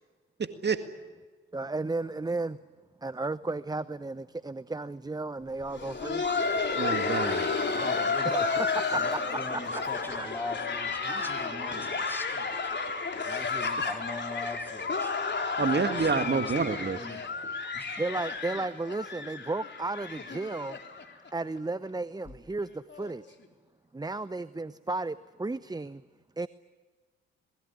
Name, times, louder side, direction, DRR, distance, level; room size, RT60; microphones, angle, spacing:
voice 1, 0.4-0.8 6.8-7.5 15.6-17.0, right 5 dB, 35° right, 8 dB, 1.9 m, -28 dB
voice 2, 1.5-2.6 3.0-6.2 8.2-8.5 8.9-9.0 9.7-10.3 18.0-20.8 21.3-23.2 23.9-26.0 26.4-26.5, right 3 dB, 15° right, 16 dB, 0.8 m, -34 dB
Laughter, 5.6-21.3 21.6-21.7 22.3-22.4 22.9-23.1 24.2-24.3, left 4 dB, 35° left, 3.9 m, -32 dB
voice 3, 7.6-8.5 8.9-12.5 13.2-15.1 15.7-18.0, left 1 dB, 5° left, 3 dB, 4.5 m, -40 dB
26.5 x 20.5 x 9.7 m, 1.4 s
hypercardioid pair, 50°, 30 cm